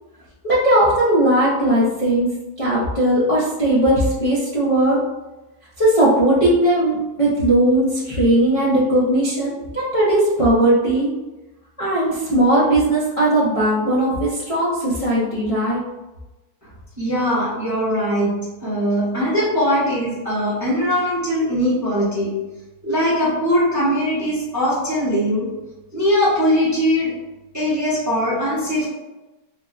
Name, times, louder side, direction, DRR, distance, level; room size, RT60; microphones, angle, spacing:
voice 1, 0.4-2.3 2.6-5.0 5.8-11.1 11.8-15.8, right 1 dB, 35° left, -10 dB, 0.5 m, -18 dB
voice 2, 17.0-22.4 22.8-25.5 25.9-27.1 27.5-28.9, equal, 15° right, -8 dB, 0.6 m, -20 dB
3.7 x 2.1 x 2.5 m, 1.1 s
omnidirectional pair, 1.7 m